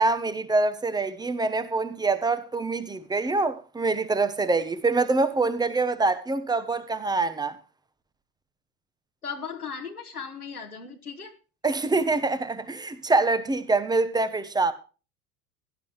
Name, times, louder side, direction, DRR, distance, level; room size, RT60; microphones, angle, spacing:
voice 1, 0.0-7.6 11.6-14.7, right 3 dB, 10° right, 1.1 m, -25 dB
voice 2, 9.2-11.3, left 6 dB, 85° left, 1.9 m, -37 dB
17.0 x 11.0 x 3.1 m
figure-of-eight pair, 85°, 44 cm